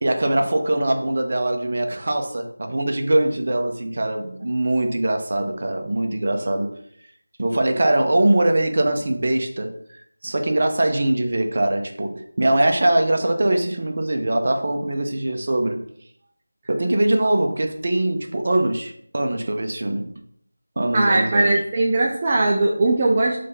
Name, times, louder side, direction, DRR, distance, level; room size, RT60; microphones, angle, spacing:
voice 1, 0.0-6.7 7.4-9.8 10.2-15.8 16.7-20.1 20.8-21.5, right 1 dB, 40° right, 4 dB, 0.8 m, -22 dB
voice 2, 20.9-23.4, right 2 dB, 20° right, -2 dB, 0.5 m, -19 dB
5.1 x 3.4 x 5.5 m, 0.67 s
figure-of-eight pair, 175°, 0 cm